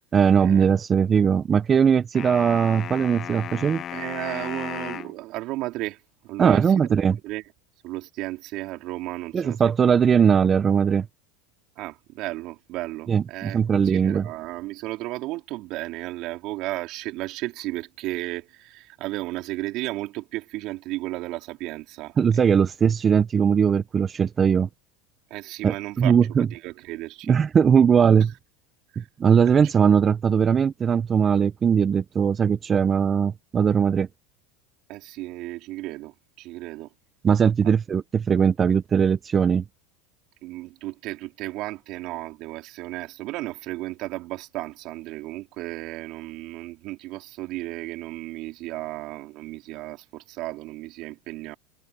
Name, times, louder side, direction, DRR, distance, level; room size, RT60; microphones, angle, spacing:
voice 1, 0.1-3.8 6.4-7.2 9.3-11.1 13.1-14.3 22.2-24.7 25.6-26.5 27.3-28.3 29.0-34.1 37.2-39.6, right 7 dB, 30° right, 0.9 m, -20 dB
sound 1, 2.1-5.2, left 10 dB, 40° left, 0.9 m, -35 dB
voice 2, 3.9-7.4 7.8-9.7 11.8-22.5 25.3-27.4 28.9-29.1 29.5-29.6 34.9-36.9 40.4-51.6, right 18 dB, 55° right, 4.5 m, -34 dB
supercardioid pair, 105°, 0 cm